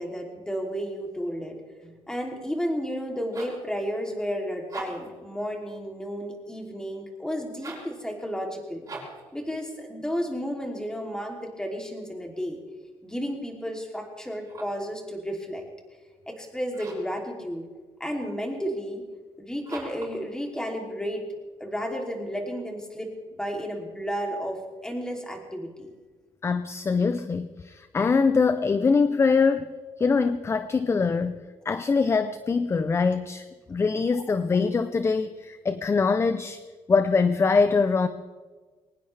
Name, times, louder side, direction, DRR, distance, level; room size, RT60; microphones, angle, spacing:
voice 1, 0.0-8.9 9.3-12.6 13.0-15.6 16.3-17.7 18.0-19.0 19.4-21.2 21.6-25.9, equal, 5° left, 1 dB, 2.9 m, -32 dB
sound 1, 3.1-3.7 4.6-5.2 7.5-8.0 8.8-9.3 14.3-14.9 16.7-17.2 19.6-20.2, right 3 dB, 30° right, 6.6 m, -41 dB
voice 2, 26.4-29.7 30.0-36.6 36.9-38.1, left 4 dB, 25° left, 12 dB, 0.6 m, -23 dB
22.5 x 19.0 x 3.4 m, 1.4 s
cardioid pair, 135°, 11 cm